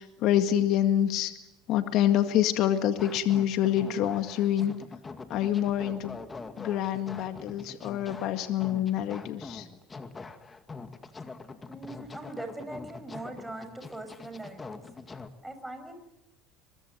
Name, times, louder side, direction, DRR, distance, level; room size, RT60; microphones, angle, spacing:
voice 1, 0.0-1.3 1.7-4.7 5.3-6.2 6.6-9.7, left 11 dB, 65° left, 8 dB, 2.0 m, -26 dB
sound 1, 3.0-15.3, left 4 dB, 25° left, 2.2 m, -43 dB
voice 2, 11.7-14.8 15.4-15.9, right 2 dB, 5° right, 7 dB, 6.5 m, -41 dB
23.0 x 23.0 x 9.3 m, 0.90 s
supercardioid pair, 95°, 0 cm